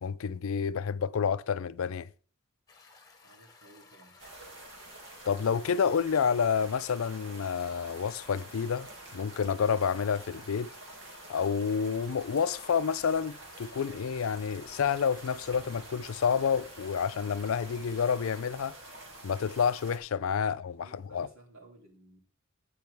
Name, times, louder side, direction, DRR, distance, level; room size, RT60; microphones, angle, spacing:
voice 1, 0.0-2.1 5.3-10.7 11.3-18.8 19.2-21.3, left 6 dB, 75° left, 0.4 m, -29 dB
sound 1, 2.7-18.4, left 3 dB, 15° left, 1.6 m, -57 dB
voice 2, 3.2-4.2 20.6-22.2, right 2 dB, 75° right, 3.1 m, -56 dB
sound 2, 4.2-20.0, right 2 dB, 60° right, 2.3 m, -48 dB
12.0 x 8.5 x 3.5 m
head